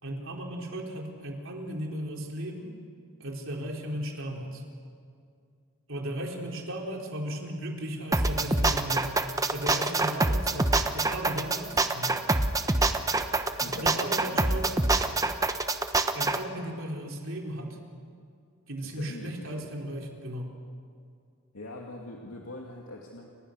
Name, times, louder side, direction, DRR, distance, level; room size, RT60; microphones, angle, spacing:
voice 1, 0.0-2.8 3.2-4.6 5.9-9.1 9.5-12.2 13.6-14.9 16.1-17.8 18.7-20.5, right 1 dB, 65° right, 1 dB, 4.0 m, -36 dB
sound 1, 8.1-16.4, right 2 dB, 15° right, 1.0 m, -25 dB
voice 2, 13.6-14.6 18.8-19.7 21.5-23.3, left 1 dB, 90° left, -1 dB, 2.5 m, -42 dB
29.5 x 25.0 x 6.6 m, 2.3 s
head